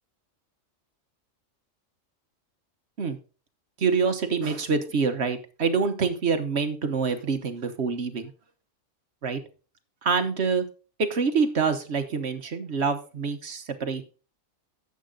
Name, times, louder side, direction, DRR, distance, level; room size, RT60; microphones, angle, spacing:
voice 1, 3.8-8.3 9.2-9.4 10.0-10.7 11.0-14.0, right 5 dB, 55° right, 8 dB, 1.3 m, -26 dB
11.0 x 7.6 x 3.8 m, 0.35 s
omnidirectional pair, 1.3 m